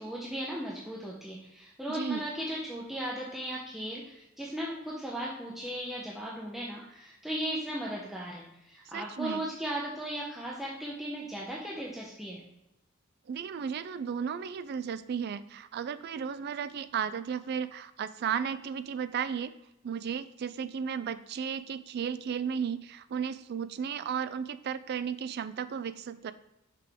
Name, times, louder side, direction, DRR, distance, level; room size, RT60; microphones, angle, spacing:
voice 1, 0.0-12.4, right 1 dB, ahead, -5 dB, 0.7 m, -37 dB
voice 2, 1.9-2.2 8.9-9.4 13.3-19.5 19.8-26.3, right 7 dB, 50° right, 13 dB, 0.3 m, -34 dB
5.9 x 4.9 x 3.5 m, 0.89 s
head